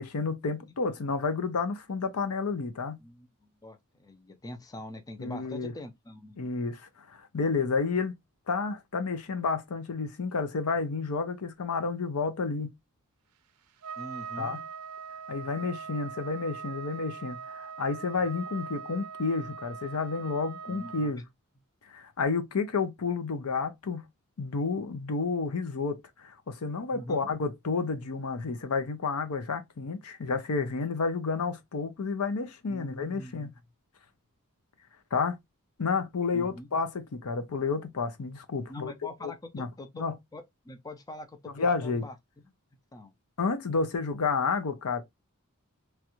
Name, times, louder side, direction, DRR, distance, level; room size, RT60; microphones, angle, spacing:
voice 1, 0.0-3.0 5.2-5.7 6.4-6.8 7.1-8.2 8.5-12.7 14.4-14.6 15.3-21.2 21.9-24.0 24.4-33.5 35.1-35.4 35.8-38.9 39.2-39.7 40.0-40.1 41.5-42.0 43.4-45.0, left 4 dB, 80° left, 0.6 m, -30 dB
voice 2, 3.0-6.4 14.0-14.6 20.7-21.1 26.9-27.3 32.7-33.5 36.3-36.7 38.7-40.0 40.3-42.1 42.9-43.1, left 1 dB, 15° left, 0.4 m, -44 dB
Trumpet, 13.8-21.1, right 6 dB, 85° right, 0.4 m, -41 dB
3.1 x 2.4 x 2.9 m
head